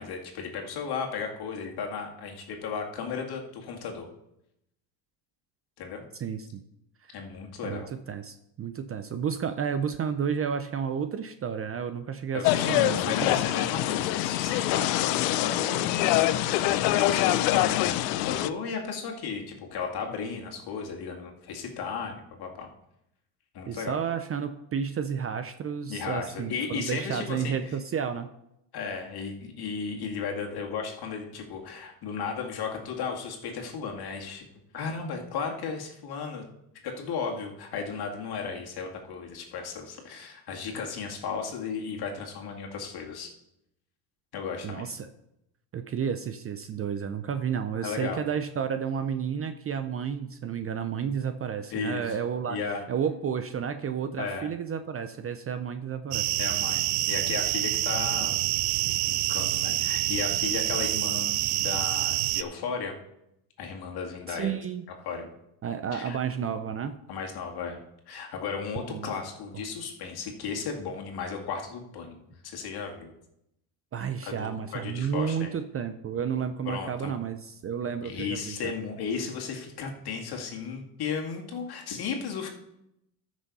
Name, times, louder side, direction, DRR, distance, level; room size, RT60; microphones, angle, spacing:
voice 1, 0.0-4.1 5.8-6.0 7.1-7.9 12.3-22.7 23.5-23.9 25.9-27.8 28.7-34.5 34.7-36.4 36.8-43.3 44.3-44.9 47.8-48.2 51.7-52.2 52.5-52.8 54.2-54.5 56.4-58.4 59.1-63.0 63.6-64.5 65.0-65.3 65.9-66.2 67.1-67.8 68.1-73.1 74.2-74.5 74.7-75.5 76.6-77.1 78.0-82.5, left 5 dB, 50° left, 1 dB, 2.3 m, -35 dB
voice 2, 6.1-6.6 7.0-7.1 7.6-13.3 23.7-28.3 44.6-45.1 45.7-52.6 52.9-56.4 64.3-64.8 65.6-67.0 68.9-69.1 73.9-78.7, right 7 dB, 30° right, 10 dB, 0.6 m, -31 dB
sound 1, 12.4-18.5, left 14 dB, 85° left, 0.7 m, -25 dB
sound 2, 56.1-62.4, right 16 dB, 90° right, 0.7 m, -27 dB
14.0 x 6.3 x 4.1 m, 0.83 s
supercardioid pair, 105°, 49 cm